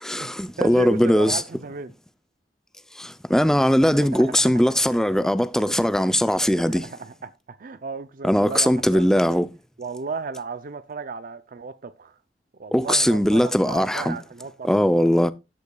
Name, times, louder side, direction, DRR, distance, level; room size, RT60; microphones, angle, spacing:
voice 1, 0.0-1.4 3.0-6.9 8.2-9.5 12.7-14.2 14.6-15.3, equal, 5° left, 0.5 m, -20 dB
voice 2, 0.6-1.9 3.8-4.5 6.0-9.4 9.8-12.2 12.6-14.7, right 4 dB, 50° right, 0.5 m, -34 dB
13.5 x 8.2 x 2.3 m
head